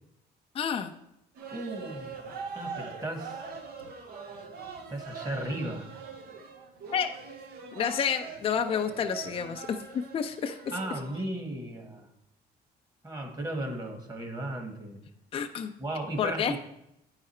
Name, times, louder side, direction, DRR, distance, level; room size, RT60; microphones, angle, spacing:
voice 1, 0.5-0.9 6.9-7.1 7.7-10.6 15.3-15.7 16.2-16.5, left 7 dB, 35° left, 5 dB, 0.5 m, -29 dB
sound 1, 1.4-11.2, right 5 dB, 70° right, 1.1 m, -42 dB
voice 2, 1.5-2.2 2.5-3.5 4.9-5.9 10.7-12.1 13.0-15.0 15.8-16.6, right 1 dB, 20° right, 4 dB, 1.5 m, -35 dB
8.9 x 4.8 x 4.3 m, 0.81 s
cardioid pair, 110°, 17 cm